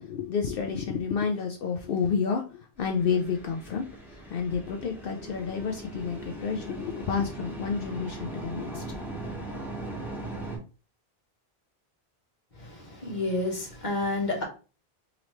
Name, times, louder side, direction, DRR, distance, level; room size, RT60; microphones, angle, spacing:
voice 1, 0.0-3.9 4.3-9.0, left 6 dB, 65° left, 3 dB, 0.7 m, -30 dB
sound 1, 2.8-10.6, right 2 dB, ahead, 1.2 m, -39 dB
voice 2, 12.6-14.4, left 2 dB, 45° left, 0 dB, 1.4 m, -30 dB
3.8 x 3.0 x 3.1 m, 0.34 s
omnidirectional pair, 1.0 m